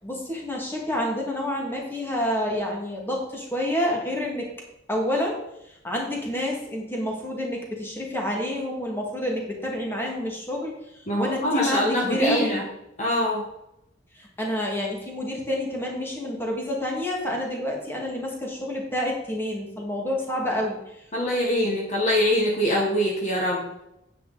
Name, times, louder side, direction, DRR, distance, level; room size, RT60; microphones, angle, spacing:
voice 1, 0.0-4.5 4.9-5.4 5.8-12.6 14.1-21.0, left 1 dB, 10° left, -1 dB, 2.2 m, -28 dB
voice 2, 11.1-12.6 13.0-13.4 21.1-23.7, equal, 40° left, -1 dB, 1.5 m, -23 dB
9.5 x 8.7 x 4.1 m, 0.85 s
head